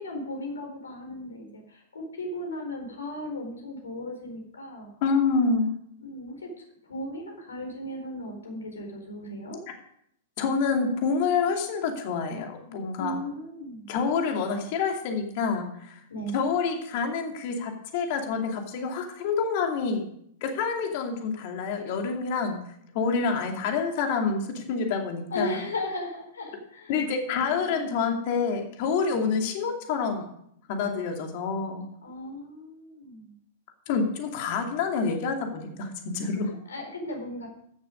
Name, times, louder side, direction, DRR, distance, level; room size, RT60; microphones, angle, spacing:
voice 1, 0.0-5.0 6.0-6.5 6.8-9.6 13.0-13.9 16.1-16.4 25.3-27.0 27.3-28.2 29.1-29.4 32.0-33.3 36.5-37.5, left 1 dB, 80° left, 2 dB, 4.1 m, -36 dB
voice 2, 5.0-5.7 10.4-13.2 13.9-16.0 16.3-20.0 20.4-22.6 22.9-25.6 26.9-30.3 30.7-31.8 33.9-36.5, left 5 dB, 50° left, 3 dB, 2.5 m, -27 dB
15.0 x 7.0 x 5.1 m, 0.71 s
hypercardioid pair, 110°, 0 cm